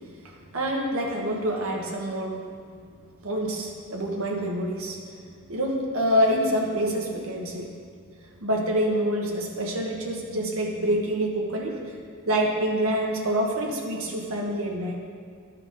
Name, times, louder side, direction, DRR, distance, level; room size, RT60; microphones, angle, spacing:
voice 1, 0.2-2.4 3.2-5.0 5.5-7.7 8.4-11.8 12.2-15.0, equal, 70° right, 0 dB, 1.2 m, -26 dB
11.5 x 4.9 x 5.1 m, 2.1 s
head